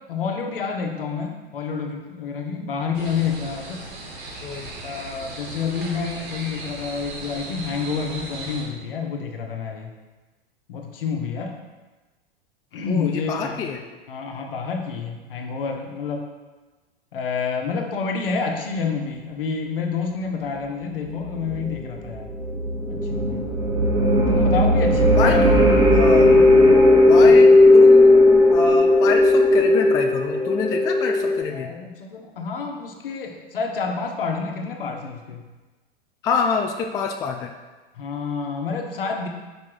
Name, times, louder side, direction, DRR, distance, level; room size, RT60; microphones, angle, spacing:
voice 1, 0.1-3.9 4.8-9.9 10.7-11.5 12.7-13.7 14.1-16.2 17.1-22.3 22.9-23.5 24.3-25.5 26.1-26.3 27.1-27.3 31.5-35.5 38.0-39.3, left 5 dB, 65° left, 2 dB, 1.2 m, -28 dB
sound 1, 2.9-8.7, right 2 dB, 30° right, 1.6 m, -37 dB
voice 2, 4.4-4.7 12.9-13.8 25.2-26.3 27.1-31.7 36.2-37.5, left 5 dB, 10° left, 4 dB, 0.3 m, -26 dB
sound 2, 21.1-31.4, left 1 dB, 10° right, 1.1 m, -16 dB
6.0 x 5.3 x 4.7 m, 1.2 s
figure-of-eight pair, 90°, 30 cm